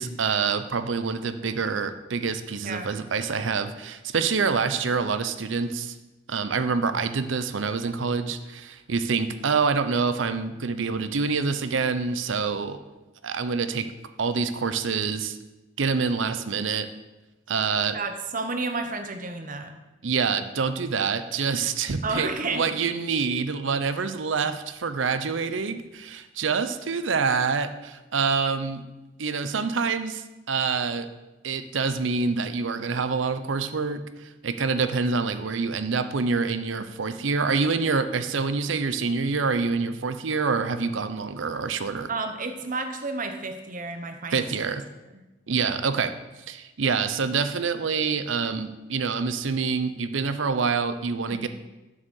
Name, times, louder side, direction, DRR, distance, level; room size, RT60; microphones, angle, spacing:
voice 1, 0.0-6.0 6.3-12.8 13.2-13.9 14.2-15.4 15.8-16.9 17.5-18.0 20.0-28.8 29.2-31.1 31.4-42.1 44.3-44.8 45.5-46.1 46.5-51.5, right 5 dB, 70° right, 11 dB, 0.6 m, -26 dB
voice 2, 17.9-19.7 22.0-22.7 42.1-44.5 45.1-45.2 51.3-51.5, right 3 dB, 45° right, 7 dB, 0.9 m, -31 dB
7.3 x 6.6 x 6.3 m, 1.1 s
head